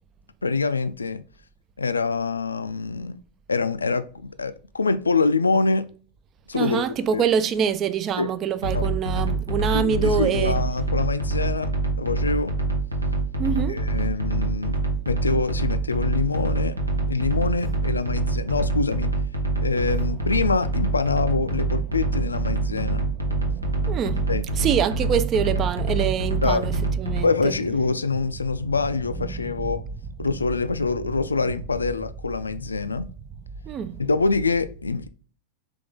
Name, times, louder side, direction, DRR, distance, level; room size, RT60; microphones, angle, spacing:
voice 1, 0.4-1.2 1.8-3.2 3.5-5.9 6.5-6.8 7.1-7.2 8.2-8.3 8.7-8.9 9.7-11.7 12.0-12.5 13.7-14.8 15.1-16.7 17.1-19.1 19.6-23.1 24.3-24.5 26.4-26.6 27.2-29.8 30.2-33.1 34.0-35.1, left 4 dB, 75° left, 0.3 m, -25 dB
voice 2, 6.5-10.6 13.4-13.8 22.5-23.0 23.3-27.6 28.6-28.7 29.3-29.5 33.6-34.0, right 7 dB, 30° right, 0.4 m, -26 dB
sound 1, 8.6-27.2, right 3 dB, 80° right, 0.8 m, -25 dB
3.5 x 3.3 x 3.5 m
figure-of-eight pair, 90°, 0 cm